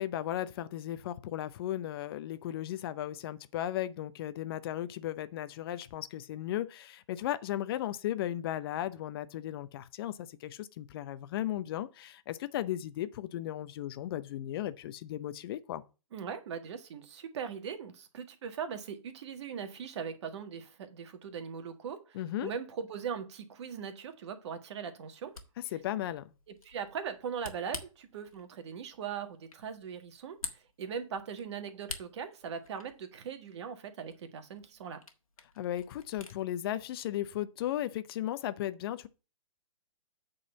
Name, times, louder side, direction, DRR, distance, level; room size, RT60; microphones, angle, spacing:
voice 1, 0.0-15.8 22.1-22.5 25.7-26.3 35.6-39.1, left 12 dB, 45° left, 0.7 m, -36 dB
voice 2, 16.1-25.3 26.5-35.0, right 7 dB, 55° right, 1.5 m, -40 dB
Camera, 25.1-36.4, left 4 dB, 90° left, 1.6 m, -49 dB
8.4 x 4.0 x 6.9 m
hypercardioid pair, 125°, 18 cm